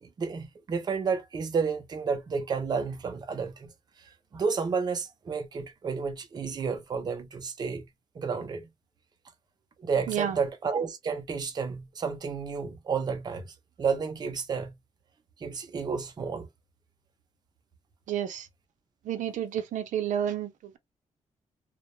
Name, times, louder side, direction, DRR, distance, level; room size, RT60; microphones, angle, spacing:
voice 1, 0.0-3.7 4.3-7.8 8.2-8.6 9.8-14.7 15.4-16.5, right 5 dB, 35° right, 0.5 m, -31 dB
voice 2, 10.1-10.4 18.1-18.5 19.0-20.8, right 10 dB, 90° right, 0.5 m, -30 dB
2.2 x 2.0 x 2.9 m
wide cardioid pair, 175°, 13 cm